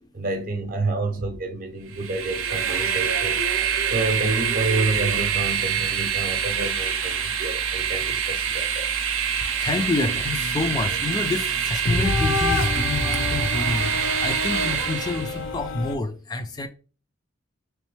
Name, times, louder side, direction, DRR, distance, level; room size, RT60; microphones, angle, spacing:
voice 1, 0.1-3.4 3.9-8.9, right 2 dB, 45° right, 0.6 m, -29 dB
Train, 1.9-15.4, right 8 dB, 85° right, 0.6 m, -25 dB
voice 2, 9.6-16.7, left 3 dB, 20° left, 0.3 m, -28 dB
sound 1, 10.0-16.0, left 3 dB, 75° left, 0.6 m, -28 dB
3.6 x 3.1 x 3.1 m
head